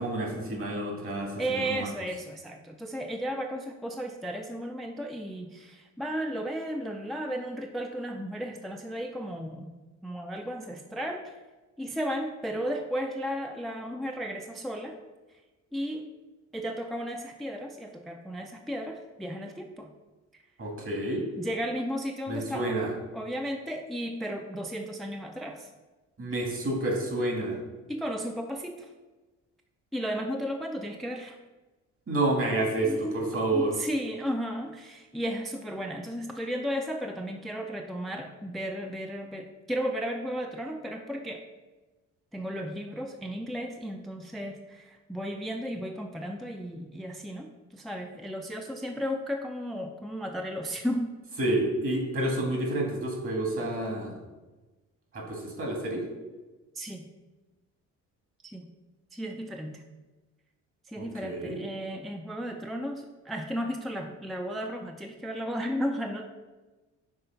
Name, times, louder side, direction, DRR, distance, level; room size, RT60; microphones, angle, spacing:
voice 1, 0.0-1.9 20.6-21.3 22.3-22.9 26.2-27.6 32.1-33.7 51.4-54.1 55.1-56.0 61.0-61.6, right 2 dB, 45° right, 1 dB, 1.7 m, -29 dB
voice 2, 1.4-9.7 10.0-11.4 11.8-15.0 15.7-16.1 16.5-19.9 20.3-20.4 21.3-25.7 27.9-28.9 29.9-31.4 32.8-41.4 42.3-51.1 56.8-57.0 58.4-58.7 59.1-59.8 60.9-66.3, equal, ahead, 4 dB, 0.4 m, -34 dB
5.5 x 3.2 x 5.6 m, 1.2 s
cardioid pair, 90°, 30 cm